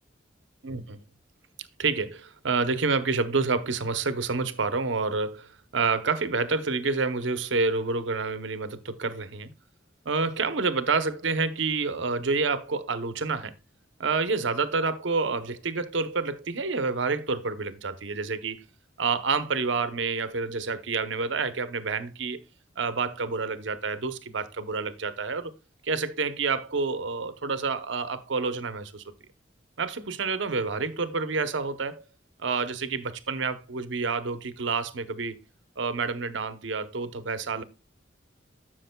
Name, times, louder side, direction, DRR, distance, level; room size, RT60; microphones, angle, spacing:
voice 1, 0.6-1.0 1.8-9.5 10.0-13.5 14.0-18.7 19.0-22.4 22.8-25.5 25.8-29.0 29.8-32.0 32.4-35.4 35.8-37.6, right 4 dB, 75° right, 0.8 m, -28 dB
12.0 x 6.1 x 2.2 m
head